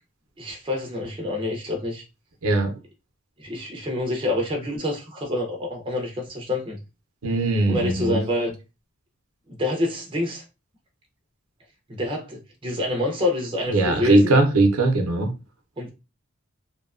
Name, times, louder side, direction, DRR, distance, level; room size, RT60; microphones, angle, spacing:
voice 1, 0.4-2.0 3.4-6.8 7.7-8.5 9.5-10.4 11.9-14.4 15.8-15.9, left 1 dB, 25° right, 0.5 m, -27 dB
voice 2, 7.2-8.2 13.7-15.3, right 2 dB, 90° right, 0.6 m, -20 dB
2.7 x 2.2 x 2.4 m
head